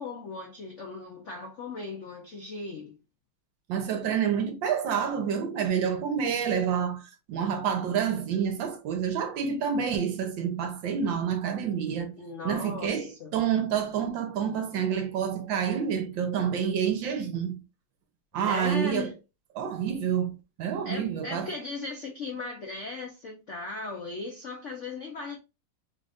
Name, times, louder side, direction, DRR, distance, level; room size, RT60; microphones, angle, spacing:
voice 1, 0.0-3.0 12.2-13.4 18.5-19.1 20.8-25.4, left 3 dB, 65° left, 0.7 m, -37 dB
voice 2, 3.7-12.1 12.4-17.6 18.3-19.1 19.6-21.5, right 8 dB, 70° right, 1.4 m, -28 dB
3.9 x 2.5 x 3.4 m
omnidirectional pair, 2.3 m